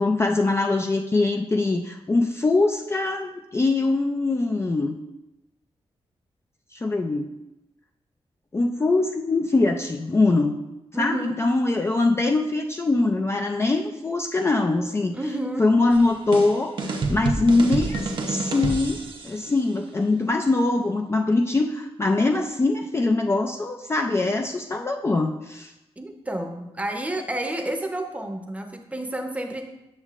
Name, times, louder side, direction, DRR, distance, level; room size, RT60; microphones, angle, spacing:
voice 1, 0.0-5.0 6.7-7.3 8.5-10.6 10.9-15.2 15.6-25.7, left 3 dB, 25° left, 4 dB, 0.4 m, -23 dB
voice 2, 10.9-11.3 15.1-15.6 26.0-29.7, right 1 dB, 15° right, 4 dB, 0.7 m, -30 dB
sound 1, 15.9-19.4, right 3 dB, 50° right, 0.7 m, -28 dB
8.2 x 6.1 x 2.5 m, 0.95 s
wide cardioid pair, 100°, 11 cm